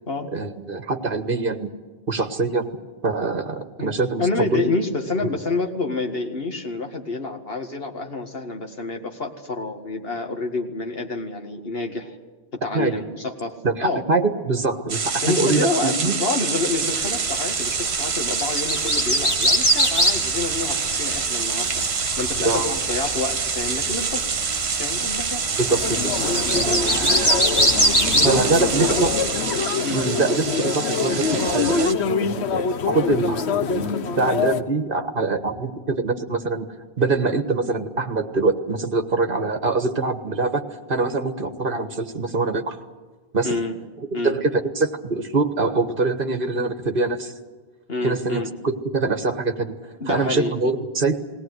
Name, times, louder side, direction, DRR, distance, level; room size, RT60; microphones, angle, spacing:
voice 1, 0.3-1.7 2.1-2.7 3.0-4.7 12.7-12.9 13.6-16.1 22.4-22.8 25.6-26.1 26.5-26.7 28.2-29.1 29.9-36.7 37.0-40.6 40.9-42.8 43.3-43.6 44.1-47.3 48.0-49.7 50.1-51.1, right 3 dB, 55° right, 7 dB, 1.8 m, -24 dB
voice 2, 3.8-12.2 12.5-13.5 13.8-14.0 15.2-21.8 22.2-24.3 24.8-25.4 26.6-27.0 28.1-28.4 28.8-29.1 29.8-30.0 43.4-43.8 44.1-44.4 47.9-48.5 50.0-50.5, left 3 dB, 65° left, 3 dB, 2.2 m, -28 dB
sound 1, 14.9-31.9, right 5 dB, 80° right, 1.4 m, -26 dB
sound 2, 16.9-29.4, equal, 25° left, 2.8 m, -25 dB
sound 3, 25.7-34.6, left 5 dB, 85° left, 1.2 m, -25 dB
19.0 x 18.5 x 9.5 m, 1.3 s
omnidirectional pair, 1.1 m